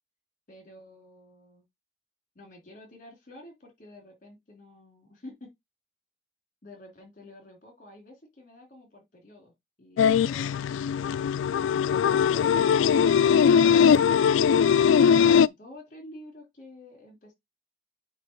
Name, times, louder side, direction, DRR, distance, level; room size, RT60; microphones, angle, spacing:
voice 1, 0.5-1.6 2.3-5.5 6.6-9.5 9.8-10.7 15.4-17.3, left 1 dB, 40° left, 3.0 m, -49 dB
sound 1, 10.0-15.5, left 7 dB, 85° left, 0.3 m, -20 dB
8.1 x 3.0 x 4.4 m
head